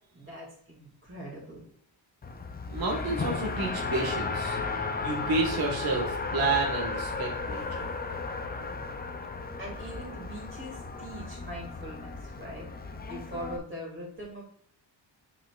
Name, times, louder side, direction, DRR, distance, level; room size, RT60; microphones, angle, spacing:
voice 1, 0.1-1.6 9.6-12.7 13.1-14.4, equal, 25° right, -5 dB, 2.4 m, -41 dB
Race car auto racing, 2.2-13.6, left 4 dB, 20° left, 0.4 m, -34 dB
voice 2, 2.7-4.6 5.0-7.9, right 3 dB, 50° right, -1 dB, 1.5 m, -30 dB
8.9 x 5.2 x 2.4 m, 0.66 s
wide cardioid pair, 170°, 46 cm